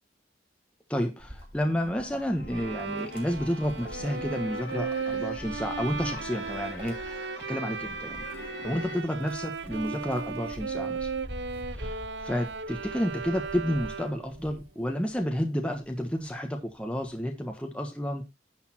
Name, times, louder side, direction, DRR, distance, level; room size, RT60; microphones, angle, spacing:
voice 1, 0.9-8.2 8.6-11.1 11.7-18.2, equal, 5° left, 3 dB, 1.3 m, -31 dB
Wind, 1.2-15.3 15.7-17.2, equal, 30° right, 3.0 m, -47 dB
sound 1, 1.5-9.0, left 3 dB, 75° left, 2.0 m, -44 dB
Bowed string instrument, 2.5-14.4, right 5 dB, 70° right, 0.8 m, -36 dB
10.5 x 6.8 x 4.3 m, 0.25 s
head